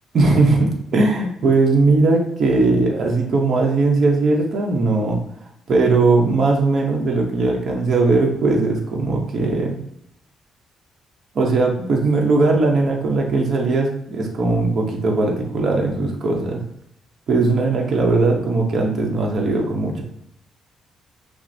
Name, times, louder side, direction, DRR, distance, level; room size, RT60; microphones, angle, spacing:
voice 1, 0.1-5.2 5.7-9.8 11.3-16.6 17.3-20.0, right 3 dB, 55° right, 0 dB, 0.8 m, -19 dB
5.8 x 2.0 x 2.6 m, 0.71 s
cardioid pair, 90°, 0 cm